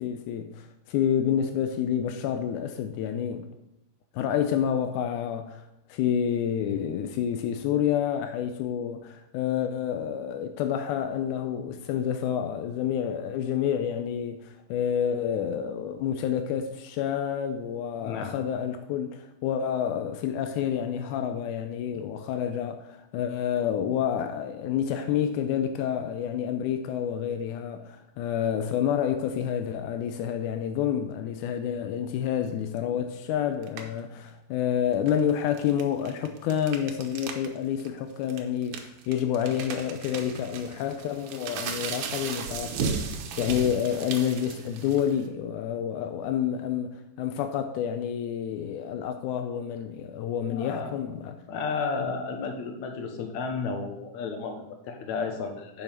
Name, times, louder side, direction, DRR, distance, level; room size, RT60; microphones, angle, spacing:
voice 1, 0.0-3.5 4.1-51.3, left 9 dB, 85° left, 1.8 m, -29 dB
voice 2, 18.0-18.4 32.8-33.0 33.7-33.8 50.5-55.8, left 4 dB, 65° left, 2.1 m, -33 dB
sound 1, 33.6-34.0 34.9-37.5 37.8-37.9 38.3-45.3, right 6 dB, 90° right, 2.9 m, -36 dB
9.4 x 5.5 x 5.8 m
omnidirectional pair, 4.2 m